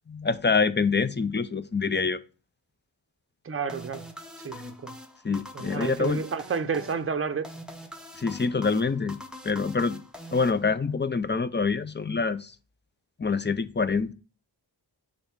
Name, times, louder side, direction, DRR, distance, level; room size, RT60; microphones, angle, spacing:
voice 1, 0.1-2.2 5.2-6.2 8.2-9.2 9.4-10.0 10.3-12.5 13.2-14.1, left 4 dB, 25° left, 0.4 m, -26 dB
voice 2, 3.4-4.1 4.4-4.9 5.5-7.5, right 6 dB, 30° right, 0.6 m, -30 dB
sound 1, 3.7-11.1, left 1 dB, ahead, 0.8 m, -44 dB
6.9 x 2.7 x 5.8 m
wide cardioid pair, 70°, 44 cm